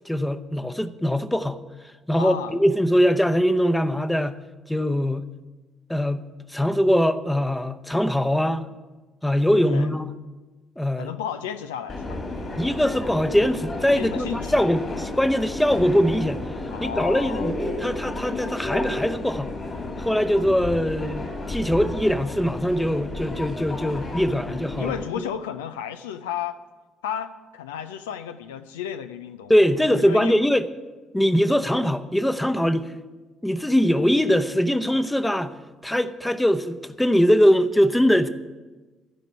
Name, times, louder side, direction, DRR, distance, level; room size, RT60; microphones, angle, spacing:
voice 1, 0.0-1.6 2.1-4.4 4.7-5.3 5.9-6.2 6.5-8.6 9.2-10.1 10.8-11.1 12.6-16.4 16.8-19.5 20.0-24.9 29.5-30.7 31.1-32.9 33.4-35.5 35.8-38.3, equal, 5° left, 0.8 m, -22 dB
voice 2, 2.1-2.5 9.7-9.9 11.0-12.7 13.9-14.7 16.7-17.5 24.4-26.6 27.0-29.5 29.9-30.4, left 9 dB, 80° left, 0.4 m, -33 dB
Subway metro underground, 11.9-25.0, left 2 dB, 40° left, 2.5 m, -32 dB
14.0 x 5.2 x 9.2 m
hypercardioid pair, 50°, 0 cm